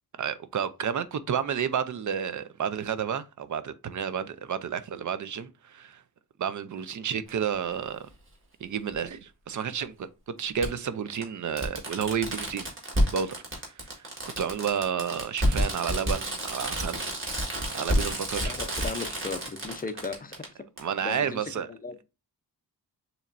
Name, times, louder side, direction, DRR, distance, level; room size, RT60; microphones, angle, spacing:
voice 1, 0.2-6.0 6.4-8.1 8.6-12.7 13.1-13.4 13.9-14.0 14.4-17.1 17.7-18.5 20.8-21.7, right 7 dB, 45° right, 0.5 m, -31 dB
Fireworks, 7.3-7.4 8.9-9.0 10.6-10.7 11.2-11.3 11.6-20.4 20.8-20.9, equal, 30° right, 1.7 m, -29 dB
voice 2, 18.4-20.4 21.0-21.9, left 4 dB, 20° left, 0.5 m, -36 dB
6.8 x 3.0 x 2.5 m
wide cardioid pair, 160°, 41 cm